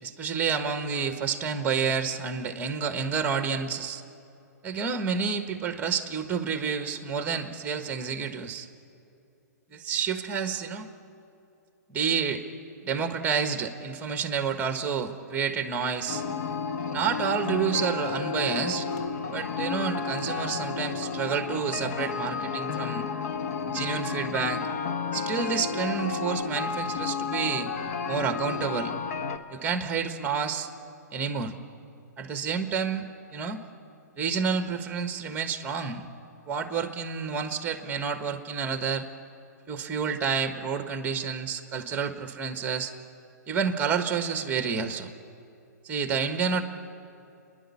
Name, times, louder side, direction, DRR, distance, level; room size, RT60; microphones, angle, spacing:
voice 1, 0.0-4.0 4.6-8.7 9.7-10.9 11.9-12.4 12.8-16.2 16.9-18.9 19.3-23.1 23.7-24.6 25.1-27.7 28.1-28.9 29.5-30.7 31.1-31.5 32.2-33.0 33.3-33.6 34.2-36.1 36.5-39.1 39.7-42.9 43.5-45.1 45.8-46.6, right 6 dB, 15° right, 8 dB, 1.4 m, -29 dB
sound 1, 16.1-29.4, left 5 dB, 50° left, 1.2 m, -32 dB
29.0 x 11.0 x 8.5 m, 2.7 s
hypercardioid pair, 130°, 10 cm